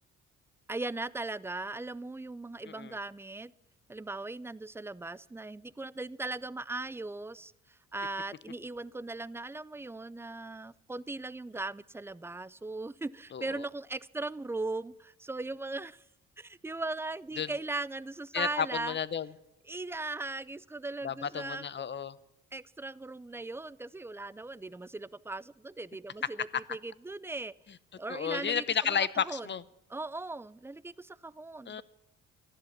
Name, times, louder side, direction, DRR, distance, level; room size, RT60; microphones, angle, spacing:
voice 1, 0.7-3.5 3.9-16.0 16.4-19.0 19.6-21.7 22.5-27.5 28.0-29.5 29.9-31.8, right 2 dB, 10° right, 19 dB, 0.4 m, -38 dB
voice 2, 2.7-3.0 13.3-13.4 17.4-17.5 18.3-19.3 21.0-22.2 28.1-29.6 31.7-31.8, left 7 dB, 40° left, 18 dB, 0.8 m, -32 dB
13.5 x 11.5 x 7.2 m, 0.83 s
cardioid pair, 90°, 30 cm